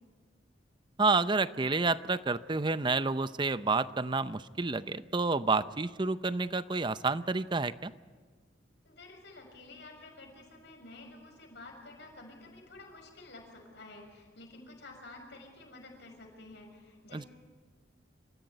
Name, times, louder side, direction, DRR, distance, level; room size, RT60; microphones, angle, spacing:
voice 1, 1.0-7.9 17.1-17.2, right 3 dB, 25° right, 14 dB, 0.6 m, -29 dB
voice 2, 8.8-17.3, left 2 dB, 65° left, 1 dB, 6.6 m, -51 dB
27.5 x 15.0 x 9.4 m, 1.5 s
head